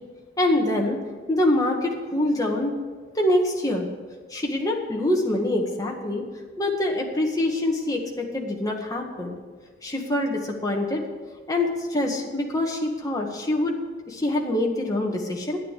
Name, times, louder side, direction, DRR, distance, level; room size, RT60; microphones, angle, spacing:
voice 1, 0.4-1.0 1.3-2.8 3.2-3.9 4.3-6.3 6.6-9.3 9.8-11.1 11.5-13.8 14.1-15.6, left 1 dB, 20° left, 0 dB, 1.7 m, -25 dB
11.0 x 9.5 x 8.4 m, 1.5 s
head